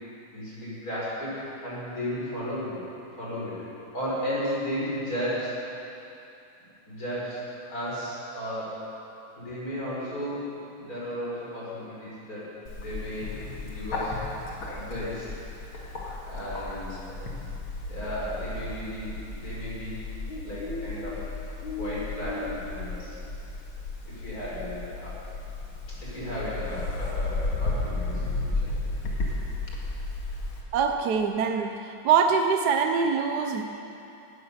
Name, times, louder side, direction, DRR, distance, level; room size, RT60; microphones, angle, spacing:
voice 1, 0.3-2.8 3.2-3.6 3.9-5.6 6.0-6.1 6.9-7.4 7.7-8.8 9.4-12.5 12.7-14.1 14.6-15.4 15.7-17.2 17.9-23.2 24.0-25.2 25.9-28.7, equal, 40° left, -8 dB, 5.7 m, -35 dB
Bird, 12.7-30.6, left 2 dB, 70° left, 2.8 m, -34 dB
voice 2, 30.7-33.6, right 6 dB, 65° right, 5 dB, 1.1 m, -24 dB
18.0 x 14.0 x 5.7 m, 2.8 s
omnidirectional pair, 2.4 m